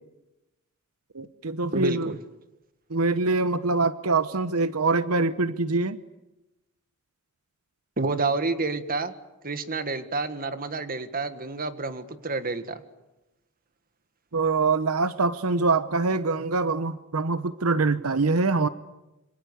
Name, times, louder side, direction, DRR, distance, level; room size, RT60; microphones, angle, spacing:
voice 1, 1.1-2.1 2.9-6.0 14.3-18.7, right 3 dB, 85° right, 13 dB, 1.0 m, -24 dB
voice 2, 1.7-2.2 8.0-9.1 9.4-12.8, right 3 dB, 45° right, 10 dB, 1.8 m, -29 dB
27.0 x 26.0 x 8.3 m, 0.97 s
head